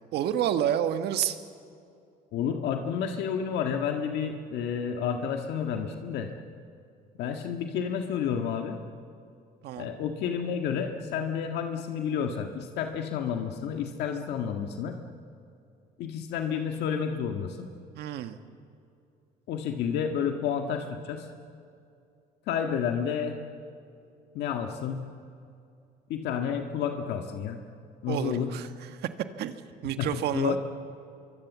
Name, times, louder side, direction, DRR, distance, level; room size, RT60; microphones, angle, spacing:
voice 1, 0.1-1.4 9.6-9.9 17.9-18.4 28.1-29.1 29.4-29.6 29.8-30.6, right 10 dB, 75° right, 9 dB, 1.5 m, -29 dB
voice 2, 2.3-6.3 7.2-8.8 9.8-15.0 16.0-17.7 19.5-21.3 22.5-23.4 24.3-25.0 26.1-27.6 28.0-28.5 30.0-30.1 30.3-30.6, left 7 dB, 80° left, 4 dB, 1.7 m, -30 dB
25.5 x 24.0 x 7.4 m, 2.5 s
cardioid pair, 110°, 17 cm